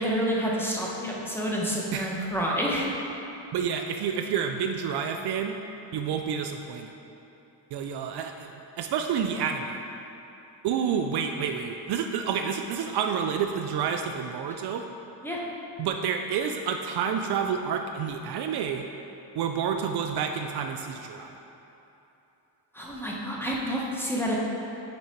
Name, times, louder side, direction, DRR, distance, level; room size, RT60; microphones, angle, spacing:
voice 1, 0.0-2.9 15.2-15.4 22.7-24.4, equal, 5° left, -4 dB, 1.0 m, -28 dB
voice 2, 3.5-5.6 5.9-6.9 7.7-8.5 8.8-9.8 10.6-14.9 15.8-18.9 19.4-21.3, right 7 dB, 60° right, 5 dB, 0.5 m, -29 dB
6.0 x 4.7 x 4.4 m, 3.0 s
cardioid pair, 105°, 44 cm